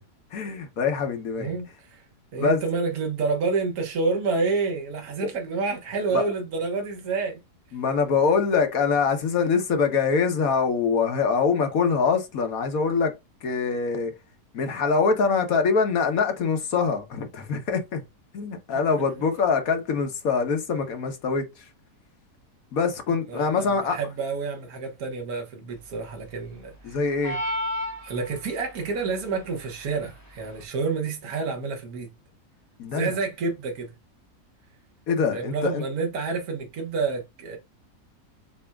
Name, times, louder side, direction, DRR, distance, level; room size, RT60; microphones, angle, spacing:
voice 1, 0.3-1.5 2.4-2.6 5.2-5.3 6.1-6.3 7.7-13.1 13.4-14.1 14.5-18.0 18.3-21.7 22.7-24.0 26.8-27.4 32.8-33.1 35.1-35.8, left 5 dB, 65° left, 1.3 m, -24 dB
voice 2, 1.4-2.0 2.3-7.4 23.3-27.0 28.0-32.1 32.9-33.9 35.3-37.6, right 4 dB, 65° right, 1.7 m, -29 dB
sound 1, 27.2-28.7, equal, 15° left, 0.9 m, -30 dB
6.8 x 2.8 x 2.3 m
omnidirectional pair, 1.7 m